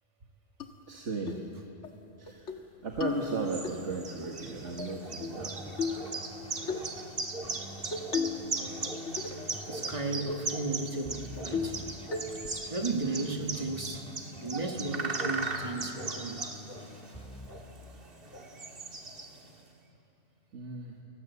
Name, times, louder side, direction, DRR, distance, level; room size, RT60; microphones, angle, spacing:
sound 1, 0.6-0.7 1.3-1.5 1.8-1.9 2.3-2.6 3.0-3.7 4.8-5.4 5.8-6.1 6.7-6.9 7.9-8.5 8.8-9.5 9.9-10.0 10.3-10.5 10.9-11.0 11.5-11.8 12.1-12.5, left 5 dB, 85° left, 1.9 m, -34 dB
voice 1, 0.9-1.4 2.2-2.6 2.8-6.1 20.5-21.0, right 4 dB, 80° right, 1 dB, 1.9 m, -36 dB
sound 2, 3.1-19.6, right 3 dB, 55° right, 1.9 m, -39 dB
Keyboard (musical), 5.4-17.5, equal, 5° left, 2.4 m, -48 dB
voice 2, 9.7-11.9 12.3-12.4 12.7-14.1 14.4-16.5, right 3 dB, 30° right, 4 dB, 1.6 m, -34 dB
30.0 x 19.5 x 8.3 m, 2.9 s
omnidirectional pair, 1.2 m